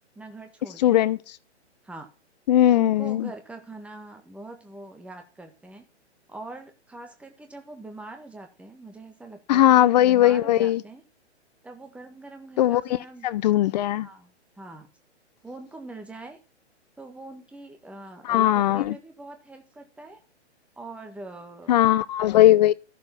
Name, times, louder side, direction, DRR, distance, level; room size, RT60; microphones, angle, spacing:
voice 1, 0.1-1.0 1.8-2.1 2.7-5.9 6.3-11.0 11.6-13.3 14.0-14.3 14.6-14.9 15.4-16.4 17.0-20.2 20.8-21.9, right 2 dB, 5° right, 1.6 m, -43 dB
voice 2, 0.8-1.2 2.5-3.3 9.5-10.8 12.6-13.0 13.2-14.1 18.2-19.0 21.7-22.7, left 13 dB, 40° left, 0.6 m, -19 dB
13.5 x 7.1 x 5.9 m
hypercardioid pair, 135°, 35 cm